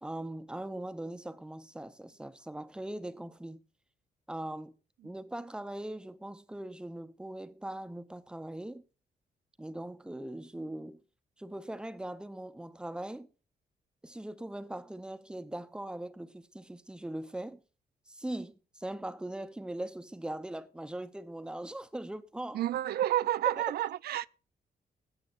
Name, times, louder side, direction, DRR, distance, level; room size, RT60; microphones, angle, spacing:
voice 1, 0.0-3.6 4.3-4.7 5.0-8.8 9.6-11.0 11.4-13.3 14.0-17.6 18.1-22.6, right 1 dB, 5° right, 0.7 m, -40 dB
voice 2, 22.5-24.3, right 13 dB, 75° right, 0.4 m, -30 dB
20.5 x 8.1 x 2.5 m
cardioid pair, 140°, 16 cm